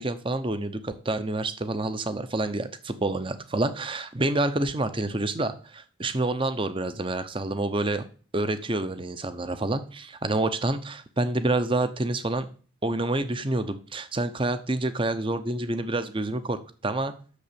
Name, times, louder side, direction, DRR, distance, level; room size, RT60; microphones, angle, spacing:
voice 1, 0.0-8.1 8.3-12.5 12.8-17.1, right 2 dB, 25° right, 11 dB, 0.7 m, -28 dB
8.3 x 6.8 x 6.9 m, 0.40 s
head